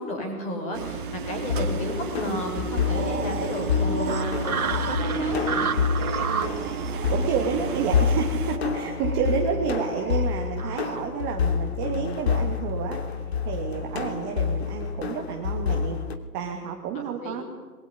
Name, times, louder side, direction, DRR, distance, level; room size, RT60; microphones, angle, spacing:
voice 1, 0.0-5.7 17.1-17.4, left 1 dB, 15° left, 3 dB, 6.2 m, -33 dB
sound 1, 0.7-8.6, right 6 dB, 30° right, 2.5 m, -32 dB
sound 2, 1.4-16.2, left 6 dB, 40° left, 2.8 m, -28 dB
sound 3, 2.9-11.0, right 6 dB, 60° right, 2.3 m, -33 dB
voice 2, 6.3-6.7 7.1-16.0 16.3-17.4, right 7 dB, 15° right, 2 dB, 1.6 m, -30 dB
25.5 x 22.5 x 9.7 m, 1.3 s
figure-of-eight pair, 150°, 48 cm